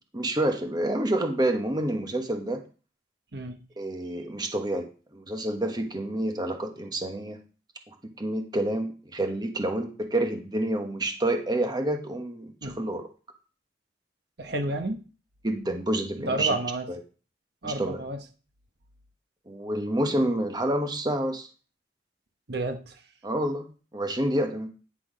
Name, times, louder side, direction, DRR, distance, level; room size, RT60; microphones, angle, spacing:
voice 1, 0.1-2.6 3.8-7.4 7.9-13.0 15.4-16.5 17.6-18.0 19.5-21.5 23.2-23.7 23.9-24.7, right 1 dB, 25° right, 5 dB, 1.2 m, -28 dB
voice 2, 14.4-15.0 16.2-16.9 17.6-18.2 22.5-23.0, right 2 dB, 60° right, 6 dB, 1.1 m, -31 dB
9.9 x 6.1 x 5.0 m, 0.36 s
head